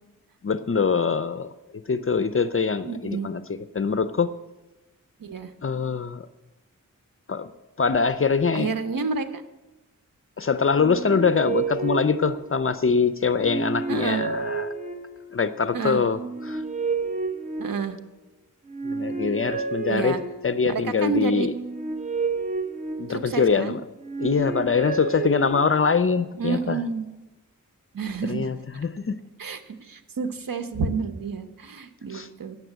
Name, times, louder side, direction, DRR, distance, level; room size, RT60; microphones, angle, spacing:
voice 1, 0.4-1.5 1.9-4.3 5.6-6.3 7.3-7.5 7.8-8.7 10.4-14.7 15.3-16.6 18.8-20.1 20.4-21.5 23.0-23.8 24.2-26.8 28.3-29.2 32.1-32.3, left 5 dB, 40° left, 13 dB, 0.5 m, -23 dB
voice 2, 2.8-3.3 5.2-5.5 8.5-9.4 13.9-14.2 15.7-16.0 17.6-18.0 19.9-20.2 20.7-21.5 23.1-23.7 26.4-27.0 27.9-28.5 29.4-32.6, right 5 dB, 80° right, 9 dB, 1.0 m, -29 dB
sound 1, 10.7-12.9 13.3-15.4 16.1-18.2 18.7-20.7 21.4-23.5 24.0-26.0, right 4 dB, 20° right, 1.0 m, -31 dB
9.4 x 7.4 x 8.0 m, 1.0 s
cardioid pair, 55°, 34 cm